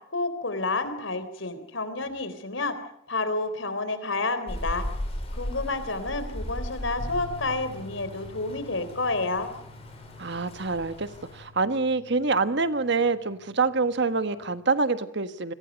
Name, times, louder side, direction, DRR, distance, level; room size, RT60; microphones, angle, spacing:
voice 1, 0.1-2.8 3.1-4.9 5.3-9.5, left 3 dB, 80° left, 11 dB, 3.9 m, -29 dB
Rain, 4.5-11.5, equal, 30° left, 6.7 m, -37 dB
sound 1, 7.0-14.6, left 3 dB, 90° right, 7.2 m, -48 dB
voice 2, 10.2-15.5, right 4 dB, 65° right, 11 dB, 1.4 m, -26 dB
29.0 x 22.5 x 5.3 m, 0.75 s
head